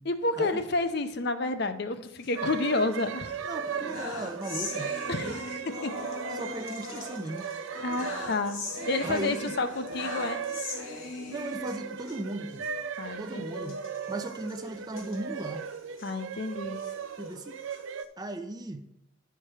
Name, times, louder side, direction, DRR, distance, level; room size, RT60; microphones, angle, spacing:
voice 1, 0.1-3.3 5.1-5.9 7.8-10.4 13.0-13.7 16.0-16.8, left 2 dB, 55° left, 0.6 m, -30 dB
sound 1, 2.1-3.0 3.4-12.2 12.5-12.7 12.9-13.1 13.6-16.1 16.6-18.0, left 3 dB, 80° left, 2.1 m, -40 dB
sound 2, 2.4-18.0, right 6 dB, 75° right, 0.5 m, -37 dB
voice 2, 3.4-4.9 5.2-5.4 6.3-7.4 9.0-9.6 11.3-12.6 13.2-13.8 14.1-15.7 17.2-17.6 18.2-18.8, right 1 dB, 20° right, 0.5 m, -37 dB
11.0 x 4.6 x 4.9 m
head